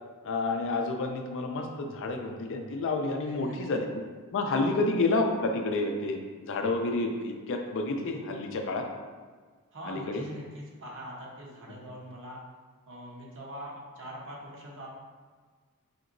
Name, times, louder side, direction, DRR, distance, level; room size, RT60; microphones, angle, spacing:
voice 1, 0.2-3.9 4.3-8.8 9.8-10.2, left 3 dB, 60° left, 4 dB, 0.4 m, -29 dB
voice 2, 3.2-3.8 4.6-4.7 9.7-12.4 12.9-14.9, equal, 60° right, -3 dB, 0.8 m, -43 dB
4.2 x 2.9 x 2.5 m, 1.5 s
head